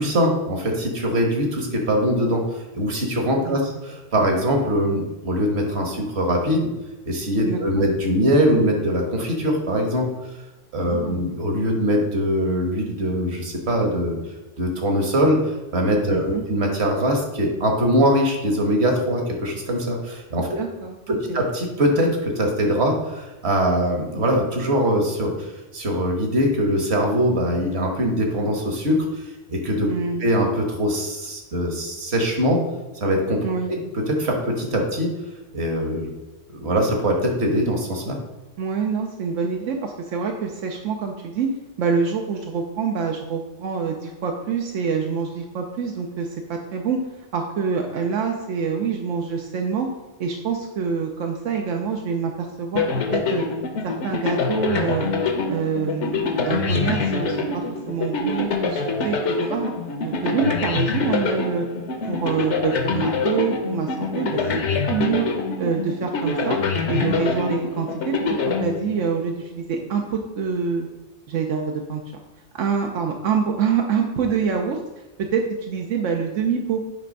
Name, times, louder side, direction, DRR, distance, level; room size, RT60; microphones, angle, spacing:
voice 1, 0.0-2.4 2.7-6.7 7.1-10.1 10.7-14.2 14.6-20.5 21.1-29.2 29.5-29.9 30.2-32.6 33.0-33.4 33.7-35.1 35.5-36.1 36.5-38.2, equal, 60° right, 2 dB, 1.5 m, -22 dB
voice 2, 3.4-3.8 7.4-7.8 10.8-11.2 16.1-16.4 20.4-21.4 29.9-30.2 33.4-33.7 38.6-41.5 41.8-47.0 47.3-49.9 50.2-52.8 53.1-53.4 53.8-55.1 55.4-59.7 60.0-61.7 62.0-65.3 65.6-66.6 66.9-68.2 68.5-70.9 71.3-72.0 72.5-74.8 75.2-76.8, right 5 dB, 85° right, 2 dB, 1.1 m, -26 dB
sound 1, 52.7-69.3, left 4 dB, 70° left, 1.2 m, -25 dB
9.2 x 3.4 x 5.3 m, 1.1 s
omnidirectional pair, 1.2 m